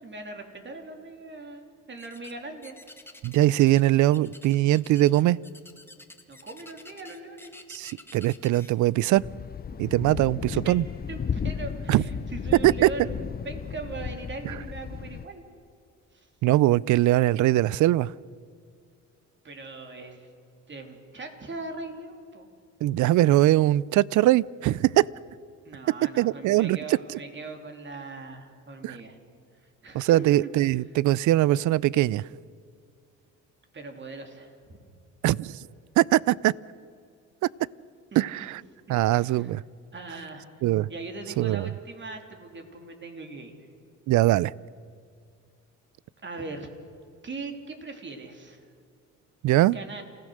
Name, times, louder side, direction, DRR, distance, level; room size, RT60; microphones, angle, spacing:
voice 1, 0.0-2.7 6.3-7.5 10.6-10.8 11.1-15.4 16.1-16.3 19.4-20.3 20.7-22.5 25.6-29.2 29.6-30.5 33.7-34.8 38.1-38.5 39.1-39.5 39.9-40.5 40.9-43.5 46.2-46.7 47.2-48.7 49.7-50.0, right 3 dB, 40° right, 4 dB, 3.2 m, -40 dB
sound 1, 2.0-2.4 2.6-3.8 4.1-8.7, left 2 dB, 10° left, 1.7 m, -49 dB
voice 2, 3.2-5.4 7.7-9.2 9.8-10.8 11.9-12.0 12.6-12.9 16.4-18.1 22.8-25.1 26.2-26.8 28.8-29.0 29.9-32.2 35.2-35.5 36.0-36.5 38.2-38.6 38.9-39.6 40.6-40.9 41.4-41.6 44.1-44.5 49.4-49.8, right 15 dB, 75° right, 24 dB, 0.5 m, -21 dB
Thunder, 9.2-15.3, left 6 dB, 30° left, 0.7 m, -34 dB
28.0 x 16.0 x 6.5 m, 2.3 s
cardioid pair, 90°, 30 cm